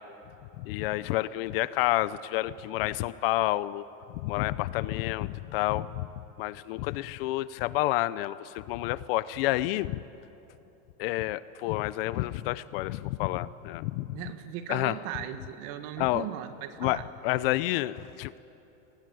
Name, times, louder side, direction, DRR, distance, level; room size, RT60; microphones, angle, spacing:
voice 1, 0.6-3.8 4.1-6.1 6.4-10.0 11.0-14.2 14.7-15.0 16.0-16.2 16.8-18.4, left 17 dB, 45° left, 17 dB, 0.6 m, -29 dB
voice 2, 14.1-17.1, right 11 dB, 45° right, 9 dB, 1.7 m, -38 dB
25.0 x 20.5 x 9.3 m, 2.9 s
supercardioid pair, 160°, 39 cm